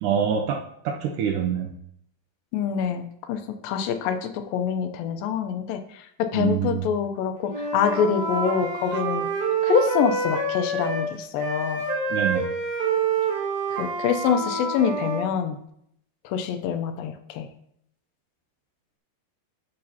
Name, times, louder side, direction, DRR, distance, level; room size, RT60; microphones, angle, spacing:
voice 1, 0.0-1.7 6.3-6.8 12.1-12.5, right 8 dB, 80° right, 3 dB, 1.9 m, -25 dB
voice 2, 2.5-9.3 9.6-11.8 13.7-15.6 16.2-17.5, left 7 dB, 85° left, 7 dB, 2.4 m, -25 dB
Wind instrument woodwind instrument, 7.4-11.1 11.4-15.2, right 4 dB, 60° right, 3.4 m, -27 dB
10.5 x 6.5 x 2.8 m, 0.72 s
omnidirectional pair, 4.1 m